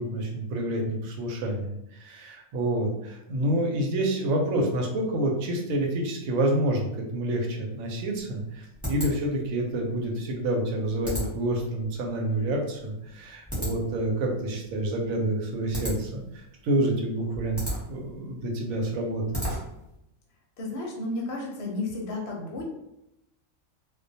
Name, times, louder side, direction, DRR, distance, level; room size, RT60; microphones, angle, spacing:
voice 1, 0.0-19.5, right 1 dB, 80° right, 1 dB, 1.0 m, -28 dB
sound 1, 7.7-20.0, equal, ahead, 0.7 m, -37 dB
voice 2, 20.6-22.7, left 2 dB, 60° left, -1 dB, 0.7 m, -32 dB
2.3 x 2.2 x 2.6 m, 0.85 s
omnidirectional pair, 1.4 m